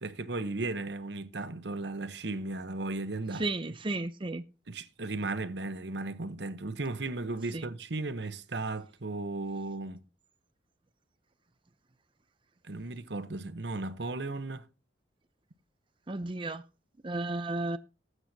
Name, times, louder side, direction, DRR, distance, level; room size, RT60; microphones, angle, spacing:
voice 1, 0.0-3.5 4.7-10.0 12.6-14.7, right 2 dB, 65° right, 1.0 m, -35 dB
voice 2, 3.3-4.4 7.5-7.6 16.1-16.6 17.0-17.8, right 2 dB, 25° right, 0.6 m, -33 dB
19.0 x 8.1 x 2.8 m
head